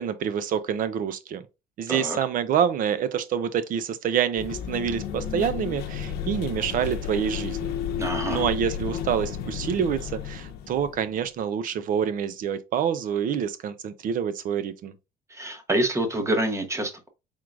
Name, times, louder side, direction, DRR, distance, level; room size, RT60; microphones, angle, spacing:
voice 1, 0.0-1.4 1.8-7.7 8.3-14.9, right 8 dB, 55° right, 0.6 m, -27 dB
sound 1, 4.4-11.2, left 8 dB, 75° left, 0.7 m, -32 dB
voice 2, 8.0-8.5 15.3-17.1, right 1 dB, 15° right, 1.0 m, -27 dB
4.7 x 3.7 x 2.4 m
cardioid pair, 130°, 17 cm